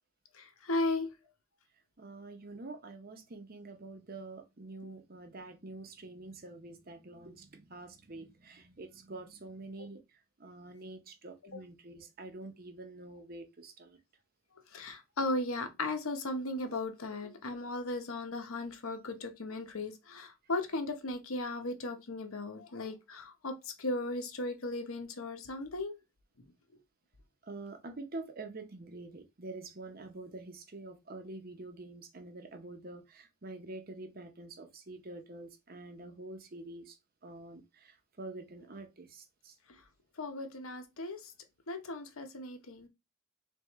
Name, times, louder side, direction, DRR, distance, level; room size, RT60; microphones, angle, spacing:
voice 1, 0.4-1.1 14.7-23.5 23.8-25.9 40.2-41.2 41.7-42.9, left 2 dB, 85° left, 0.9 m, -36 dB
voice 2, 2.0-14.0 27.4-37.0 37.2-39.5, right 2 dB, 45° right, 0.7 m, -47 dB
3.7 x 3.6 x 3.0 m
head